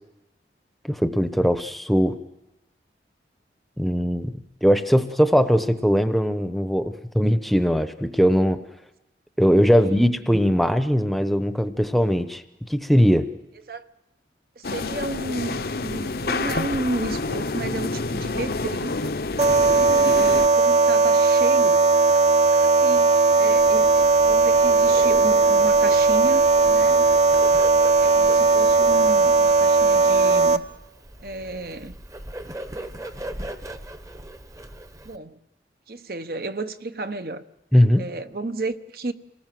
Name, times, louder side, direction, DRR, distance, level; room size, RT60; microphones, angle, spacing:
voice 1, 0.8-2.2 3.8-8.6 9.4-12.4 12.7-13.3 37.7-38.0, equal, ahead, 0.9 m, -20 dB
voice 2, 9.7-10.1 13.7-13.9 14.6-19.2 20.0-21.8 22.1-27.1 28.0-30.6 31.2-32.0 35.0-35.4 35.9-37.4 38.0-39.1, right 2 dB, 55° right, 1.0 m, -32 dB
sound 1, 14.6-20.5, left 3 dB, 55° left, 0.8 m, -28 dB
sound 2, 19.4-30.6, right 3 dB, 40° right, 0.8 m, -17 dB
Bird, 23.5-35.2, right 1 dB, 20° right, 1.0 m, -39 dB
28.0 x 19.0 x 7.6 m
head